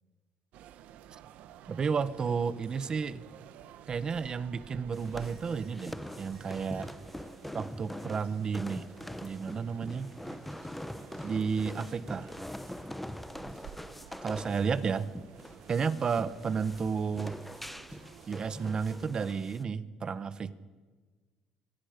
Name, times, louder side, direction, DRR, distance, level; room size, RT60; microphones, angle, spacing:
sound 1, 0.5-19.1, right 10 dB, 75° right, 1.2 m, -52 dB
voice 1, 1.7-3.2 3.9-6.9 7.5-8.9 9.2-10.1 11.2-12.3 14.2-15.1 15.7-17.4 18.3-20.5, right 6 dB, 35° right, 14 dB, 1.1 m, -32 dB
sound 2, 4.9-19.6, left 1 dB, 5° left, 0.7 m, -44 dB
27.0 x 25.0 x 5.2 m, 1.4 s
cardioid pair, 130°, 2 cm